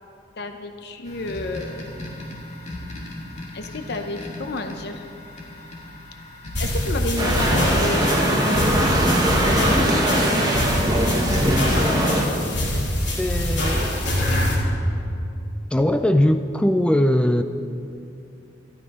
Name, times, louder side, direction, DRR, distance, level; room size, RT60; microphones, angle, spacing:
voice 1, 0.4-1.9 3.5-5.0 6.6-10.3 11.7-12.9, left 2 dB, 65° left, 6 dB, 0.7 m, -32 dB
sound 1, 1.0-12.8, left 1 dB, 40° left, 2.2 m, -39 dB
sound 2, 6.5-14.5, left 1 dB, 80° left, 2.8 m, -24 dB
sound 3, 7.2-12.3, right 1 dB, 20° right, 1.5 m, -21 dB
voice 2, 11.4-11.9 13.2-14.1 15.7-17.4, left 1 dB, 5° left, 8 dB, 0.3 m, -21 dB
12.5 x 11.5 x 5.3 m, 2.7 s
head